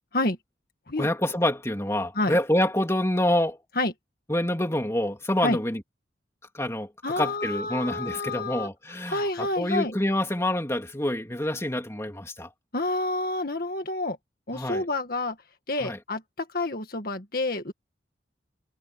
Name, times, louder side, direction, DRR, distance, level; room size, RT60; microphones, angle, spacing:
voice 1, 1.0-3.6 4.3-5.8 6.5-12.5 14.5-14.8 15.8-16.0, left 1 dB, 15° left, 3.0 m, -27 dB
voice 2, 7.0-8.7 9.1-9.9 12.7-14.2 14.5-15.4 15.7-17.7, left 2 dB, 50° left, 1.9 m, -28 dB
head